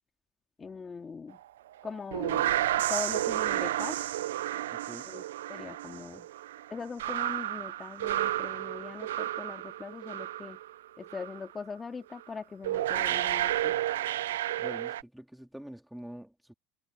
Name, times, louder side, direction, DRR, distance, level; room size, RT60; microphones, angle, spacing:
voice 1, 0.6-1.4 1.8-2.5 2.9-4.0 5.1-5.2 5.5-6.3 6.7-10.6 11.0-13.8, left 5 dB, 25° left, 2.3 m, -41 dB
sound 1, 1.8-10.7 11.0-11.4 12.2-12.3 12.6-15.0, right 13 dB, 90° right, 0.8 m, -31 dB
voice 2, 4.7-5.1 14.6-16.5, equal, ahead, 3.6 m, -45 dB
hypercardioid pair, 85°, 0 cm